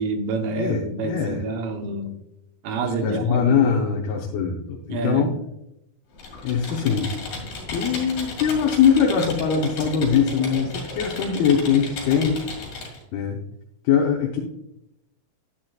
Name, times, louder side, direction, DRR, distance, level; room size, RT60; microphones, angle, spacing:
voice 1, 0.0-2.2 2.6-3.7 4.9-5.3, right 3 dB, 75° right, 5 dB, 2.7 m, -28 dB
voice 2, 0.6-1.4 3.0-5.3 6.4-7.1 7.7-12.4 13.1-13.4 13.8-14.4, left 7 dB, 90° left, 0 dB, 2.9 m, -22 dB
Computer keyboard, 6.1-13.0, left 3 dB, 65° left, 3.7 m, -34 dB
10.5 x 9.6 x 2.4 m, 0.82 s
omnidirectional pair, 4.3 m